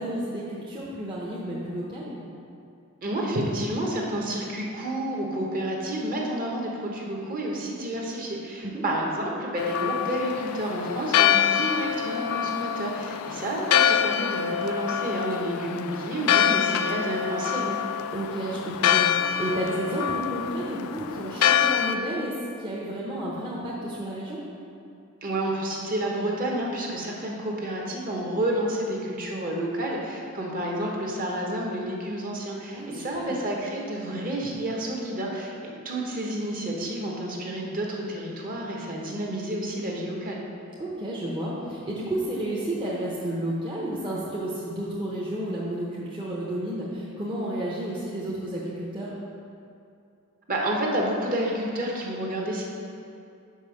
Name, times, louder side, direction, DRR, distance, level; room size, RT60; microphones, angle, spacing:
voice 1, 0.0-2.2 8.6-8.8 18.1-24.4 32.7-33.4 40.8-49.2, right 1 dB, 25° right, -6 dB, 0.8 m, -31 dB
voice 2, 3.0-17.8 25.2-40.4 50.5-52.6, right 1 dB, 40° right, -1 dB, 1.1 m, -30 dB
Church bell, 9.6-21.9, left 9 dB, 90° left, 0.3 m, -25 dB
5.4 x 5.1 x 6.3 m, 2.5 s
head